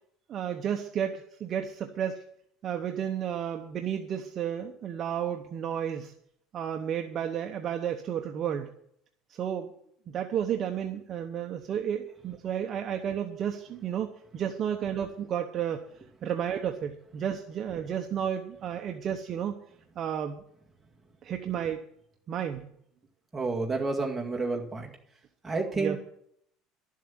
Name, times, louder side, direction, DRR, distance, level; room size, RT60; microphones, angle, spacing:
voice 1, 0.3-2.2 2.6-6.1 6.5-8.7 9.3-9.7 10.1-15.8 16.2-19.6 20.0-20.4 21.2-21.9 22.3-22.7 25.8-26.0, right 9 dB, 35° right, 4 dB, 0.9 m, -32 dB
voice 2, 23.3-24.9 25.4-26.0, right 3 dB, 10° right, -2 dB, 2.0 m, -30 dB
12.0 x 7.6 x 9.3 m, 0.70 s
cardioid pair, 170°, 0 cm